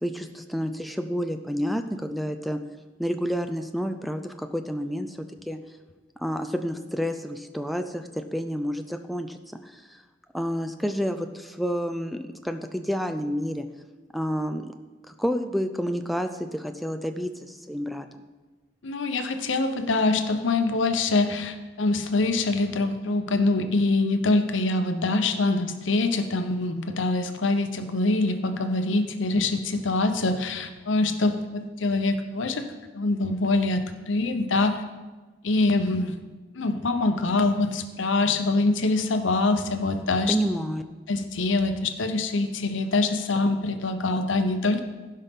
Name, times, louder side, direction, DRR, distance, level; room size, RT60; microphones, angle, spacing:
voice 1, 0.0-2.6 3.0-5.2 5.5-5.6 6.2-9.4 9.6-10.0 10.3-13.7 14.1-14.7 15.1-18.3 40.3-40.8, equal, ahead, 6 dB, 0.4 m, -29 dB
voice 2, 18.8-32.7 32.9-34.8 35.4-36.2 36.5-40.4 41.1-44.8, left 2 dB, 90° left, 8 dB, 0.8 m, -24 dB
15.5 x 5.5 x 3.6 m, 1.3 s
head